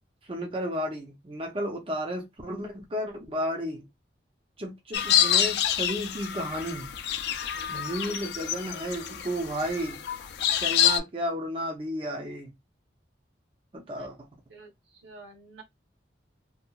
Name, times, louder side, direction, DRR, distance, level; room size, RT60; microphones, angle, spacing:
voice 1, 0.3-3.9 4.6-6.9 7.7-10.0 10.6-12.5 13.7-14.3, equal, 30° right, 0.5 m, -33 dB
sound 1, 4.9-11.0, left 10 dB, 60° left, 0.3 m, -27 dB
voice 2, 15.0-15.6, right 3 dB, 85° right, 1.0 m, -48 dB
2.8 x 2.3 x 2.2 m
head